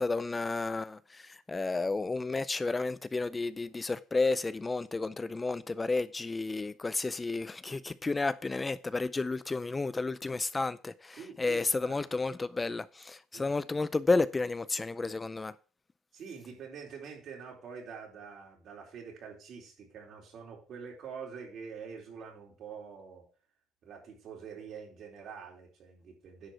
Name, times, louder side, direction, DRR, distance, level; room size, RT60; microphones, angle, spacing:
voice 1, 0.0-15.5, left 3 dB, 20° left, 0.4 m, -32 dB
voice 2, 11.1-12.0 13.3-13.5 16.1-23.2 23.8-26.5, right 6 dB, 60° right, 4.0 m, -46 dB
10.5 x 4.9 x 6.1 m
cardioid pair, 100°, 0 cm